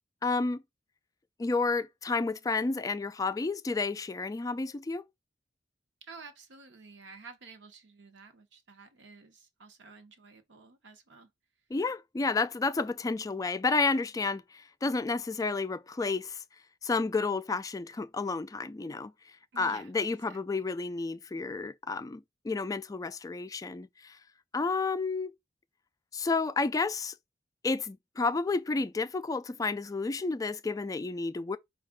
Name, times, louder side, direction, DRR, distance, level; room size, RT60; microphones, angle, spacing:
voice 1, 0.2-0.6 1.4-5.0 11.7-16.4 16.8-19.1 19.6-24.2 24.5-25.3 26.1-27.1 27.6-31.6, left 3 dB, 20° left, 0.3 m, -31 dB
voice 2, 6.0-11.3 19.5-20.7, right 4 dB, 90° right, 0.9 m, -52 dB
5.2 x 2.3 x 3.7 m
head